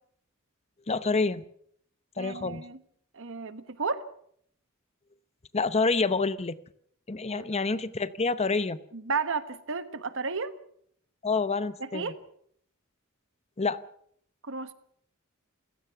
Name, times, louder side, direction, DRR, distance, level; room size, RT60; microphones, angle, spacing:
voice 1, 0.9-1.4 2.2-2.6 5.5-6.6 7.1-8.8 11.2-12.1 13.6-13.8, left 4 dB, 30° left, 14 dB, 0.8 m, -27 dB
voice 2, 2.2-2.8 3.1-4.0 7.3-7.5 8.9-10.5 11.8-12.1 14.4-14.7, right 4 dB, 65° right, 11 dB, 1.4 m, -33 dB
28.0 x 16.5 x 5.9 m, 0.65 s
head